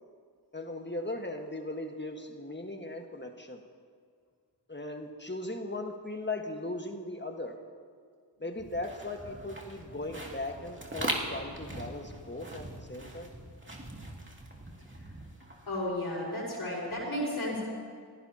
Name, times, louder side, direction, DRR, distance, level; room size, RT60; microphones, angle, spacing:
voice 1, 0.5-3.6 4.7-7.6 8.4-13.3, left 2 dB, 25° left, 3 dB, 1.6 m, -38 dB
sound 1, 8.6-15.9, right 1 dB, 25° right, 2.5 m, -41 dB
voice 2, 15.7-17.6, left 1 dB, 60° left, -6 dB, 5.2 m, -33 dB
26.5 x 16.0 x 2.9 m, 2.1 s
cardioid pair, 40°, 42 cm